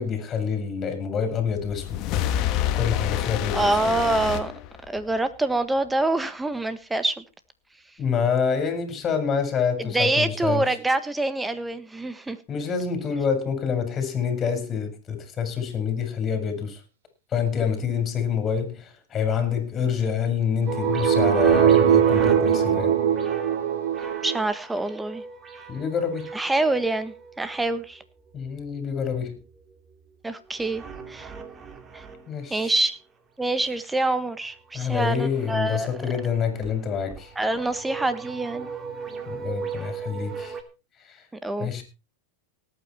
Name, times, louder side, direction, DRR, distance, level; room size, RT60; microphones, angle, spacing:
voice 1, 0.0-2.0 2.7-3.7 8.0-10.6 12.5-16.8 17.3-22.9 25.7-26.3 28.3-29.4 32.3-32.7 34.7-37.3 39.3-40.6 41.0-41.2 41.6-41.8, left 6 dB, 30° left, 5.0 m, -27 dB
sound 1, 1.5-5.2, left 11 dB, 45° left, 1.7 m, -28 dB
voice 2, 3.5-4.5 4.9-7.2 9.8-12.4 24.2-25.2 26.3-28.0 30.2-31.3 31.9-32.0 32.5-33.0 33.4-36.0 37.3-38.7 41.4-41.8, right 2 dB, 10° right, 1.5 m, -26 dB
sound 2, 20.6-24.4, right 10 dB, 85° right, 2.3 m, -21 dB
sound 3, 20.7-27.6 30.6-32.2 34.9-35.6 35.9-36.2 36.6-36.7 37.1-40.6, right 4 dB, 25° right, 2.5 m, -32 dB
18.5 x 8.9 x 4.4 m
hypercardioid pair, 115°, 0 cm